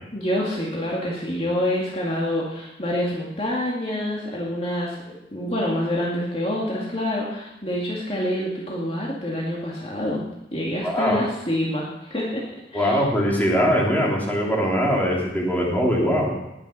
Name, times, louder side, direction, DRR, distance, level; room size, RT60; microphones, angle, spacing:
voice 1, 0.1-5.0 5.3-12.4 12.7-13.0, left 1 dB, 35° left, -4 dB, 2.2 m, -27 dB
voice 2, 10.8-11.2 12.7-16.3, equal, 10° left, -3 dB, 3.0 m, -21 dB
19.0 x 7.3 x 6.6 m, 0.89 s
head